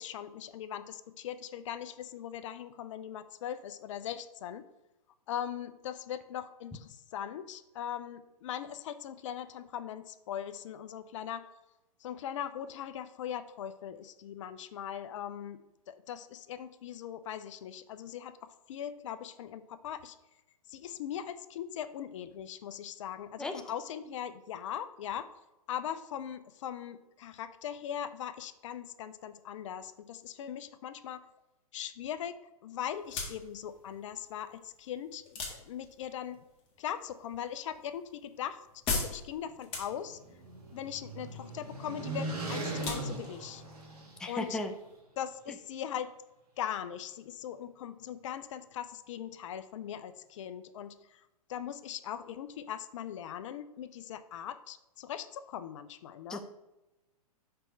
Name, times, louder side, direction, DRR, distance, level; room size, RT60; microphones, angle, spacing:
voice 1, 0.0-4.6 5.3-11.5 12.0-15.6 15.9-20.2 20.7-25.3 25.7-31.2 31.7-36.4 36.8-38.6 38.9-40.2 40.7-43.6 44.3-44.6 45.2-46.1 46.6-51.2 51.5-56.4, left 9 dB, 55° left, 12 dB, 0.5 m, -40 dB
sound 1, 32.9-45.0, left 4 dB, 30° left, 1.7 m, -42 dB
sound 2, 39.7-44.5, right 2 dB, 85° right, 2.3 m, -39 dB
voice 2, 44.2-44.7 56.3-56.4, left 2 dB, 5° left, 4 dB, 0.5 m, -34 dB
5.2 x 4.3 x 5.6 m, 1.0 s
hypercardioid pair, 125°, 19 cm